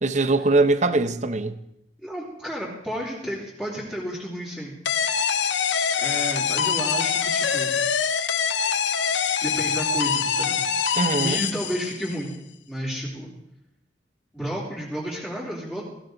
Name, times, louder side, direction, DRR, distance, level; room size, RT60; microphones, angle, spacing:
voice 1, 0.0-1.6 10.9-11.4, right 3 dB, 40° right, 1.0 m, -21 dB
voice 2, 2.0-4.7 6.0-7.8 9.4-12.4 12.7-13.3 14.3-15.8, equal, 5° left, 3.4 m, -32 dB
sound 1, 4.9-12.2, left 7 dB, 85° left, 0.8 m, -24 dB
18.0 x 16.0 x 4.0 m
head